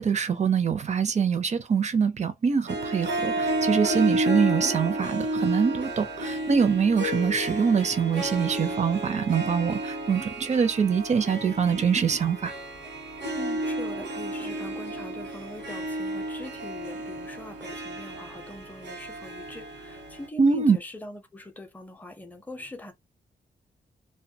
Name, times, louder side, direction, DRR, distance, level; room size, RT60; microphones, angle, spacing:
voice 1, 0.0-12.5 20.4-20.8, right 6 dB, 40° right, 0.5 m, -24 dB
Harp, 2.7-20.3, right 1 dB, 85° right, 1.0 m, -32 dB
voice 2, 13.3-22.9, left 1 dB, 10° left, 0.5 m, -42 dB
2.2 x 2.1 x 2.6 m
wide cardioid pair, 125°, 18 cm